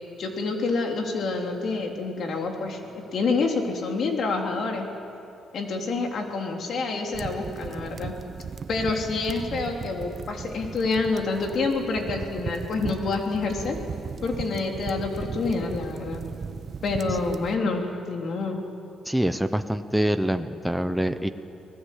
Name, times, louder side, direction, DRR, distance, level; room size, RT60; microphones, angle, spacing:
voice 1, 0.2-4.9 5.5-8.1 8.7-13.8 14.2-16.2 16.8-17.8 18.1-18.6, left 3 dB, 60° left, 2 dB, 3.5 m, -27 dB
sound 1, 7.1-17.6, right 6 dB, 45° right, 0.8 m, -36 dB
voice 2, 19.1-21.3, right 1 dB, 5° right, 9 dB, 0.9 m, -25 dB
24.5 x 19.0 x 8.5 m, 2.9 s
cardioid pair, 90°, 0 cm